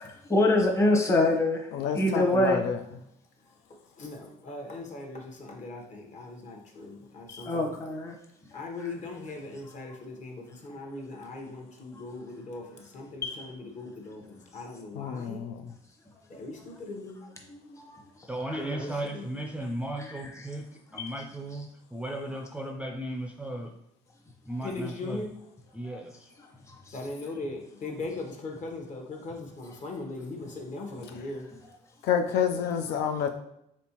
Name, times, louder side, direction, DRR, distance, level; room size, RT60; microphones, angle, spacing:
voice 1, 0.0-1.7 1.9-2.6 7.3-8.1 8.8-8.9 13.2-13.4 17.5-18.0 18.4-18.8 20.0-20.5 20.9-21.1 21.5-21.6 25.8-26.0 26.7-27.0, left 2 dB, 15° left, 0 dB, 0.8 m, -26 dB
voice 2, 1.7-2.7 15.0-15.5 32.1-33.3, left 8 dB, 90° left, 6 dB, 0.4 m, -28 dB
voice 3, 4.0-7.7 8.5-15.4 16.3-17.2 18.6-19.3 24.6-25.3 26.9-31.4, left 2 dB, 45° left, 1 dB, 1.0 m, -39 dB
voice 4, 18.3-20.7 20.9-23.7 24.5-25.2 25.7-26.1, right 1 dB, 5° right, 1 dB, 0.4 m, -35 dB
4.3 x 3.5 x 2.9 m, 0.78 s
cardioid pair, 110°, 17 cm